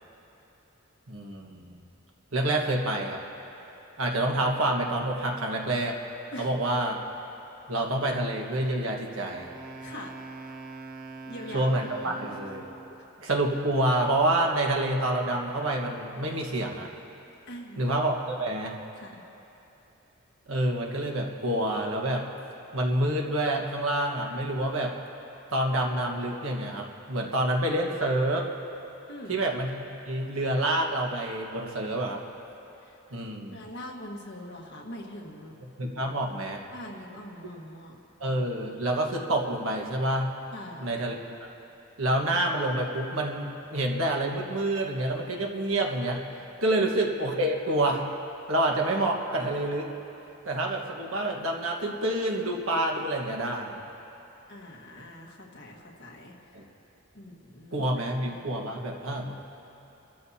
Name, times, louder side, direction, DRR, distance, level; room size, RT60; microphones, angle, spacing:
voice 1, 1.1-1.8 2.3-3.2 4.0-6.0 6.4-7.0 7.7-9.6 11.5-12.6 13.2-16.9 17.8-18.8 20.5-22.2 22.7-24.9 25.5-28.5 29.3-32.2 33.1-33.6 35.8-36.6 38.2-40.3 40.8-41.5 42.0-46.2 46.6-48.0 48.5-49.9 50.4-53.8 56.5-56.6 57.7-59.4, right 1 dB, 85° right, 1 dB, 1.5 m, -28 dB
Wind instrument woodwind instrument, 9.3-13.0, right 3 dB, 45° right, 0.8 m, -43 dB
voice 2, 9.8-10.2 11.3-11.7 12.0-12.3 17.5-17.9 19.0-19.2 29.1-29.4 32.8-33.2 33.5-35.6 36.7-38.0 40.5-40.9 54.5-56.5 57.1-57.9, left 1 dB, 55° left, -1 dB, 1.6 m, -43 dB
26.0 x 13.5 x 2.8 m, 3.0 s
head